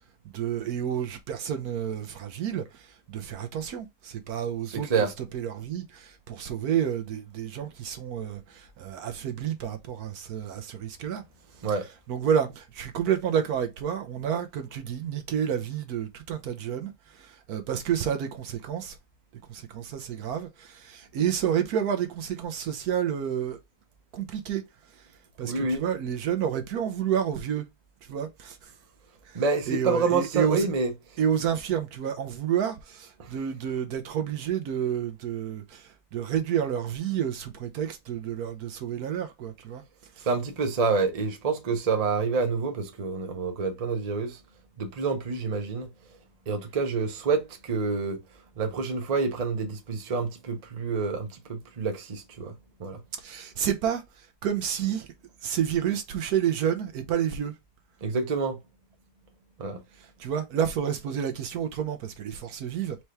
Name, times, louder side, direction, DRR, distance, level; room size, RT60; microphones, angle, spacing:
voice 1, 0.3-11.2 12.1-19.0 19.5-23.6 24.1-24.6 25.0-25.1 25.4-27.6 28.1-28.7 29.3-30.7 31.2-39.8 40.2-40.3 53.2-55.1 55.4-57.6 60.0-63.0, right 9 dB, 70° right, 1.1 m, -30 dB
voice 2, 4.7-5.1 11.6-11.9 25.4-25.8 29.3-30.9 40.3-44.4 44.8-45.9 46.5-48.2 48.6-52.5 52.8-53.0 58.0-58.6 59.6-59.8, right 4 dB, 30° right, 0.7 m, -27 dB
4.5 x 2.8 x 3.3 m
omnidirectional pair, 1.8 m